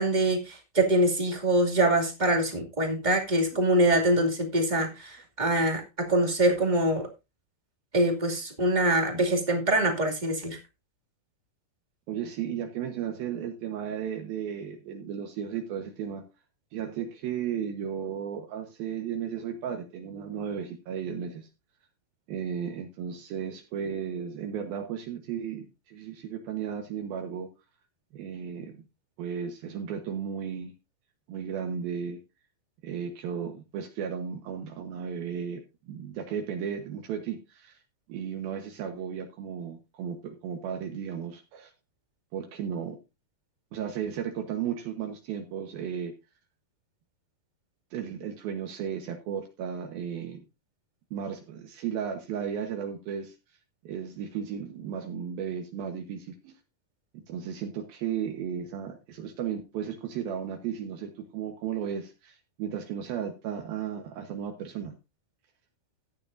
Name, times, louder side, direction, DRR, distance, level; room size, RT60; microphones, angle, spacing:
voice 1, 0.0-7.1 7.9-10.6, right 1 dB, 15° right, 1 dB, 1.7 m, -24 dB
voice 2, 12.1-16.2 16.7-21.5 22.3-27.5 28.1-28.8 29.2-30.7 31.3-32.2 32.8-37.8 38.1-41.7 42.3-43.0 43.7-46.1 47.9-50.4 51.1-53.4 53.8-56.5 57.3-64.9, right 8 dB, 70° right, 4 dB, 2.9 m, -34 dB
14.5 x 10.0 x 2.6 m, 0.26 s
omnidirectional pair, 4.5 m